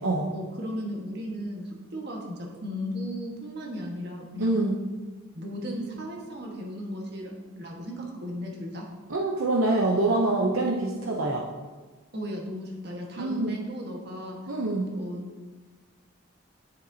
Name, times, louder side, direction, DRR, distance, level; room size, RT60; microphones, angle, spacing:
voice 1, 0.3-4.5 5.3-8.8 12.1-14.4 14.9-15.2, equal, 50° right, -1 dB, 1.5 m, -36 dB
voice 2, 4.4-4.8 9.1-11.5 13.2-13.6 14.5-14.9, right 2 dB, 75° right, -1 dB, 0.7 m, -25 dB
10.5 x 7.1 x 2.8 m, 1.3 s
head